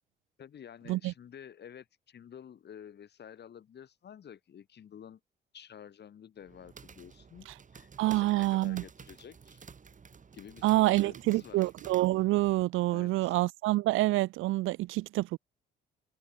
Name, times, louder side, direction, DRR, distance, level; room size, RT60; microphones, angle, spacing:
voice 1, 0.4-5.2 5.5-7.5 7.7-9.7 10.3-11.7 12.9-13.4, left 9 dB, 60° left, 4.1 m, -50 dB
sound 1, 6.4-12.6, right 5 dB, 40° right, 6.2 m, -52 dB
voice 2, 8.0-8.8 10.6-15.4, right 18 dB, 90° right, 0.7 m, -27 dB
cardioid pair, 90°, 20 cm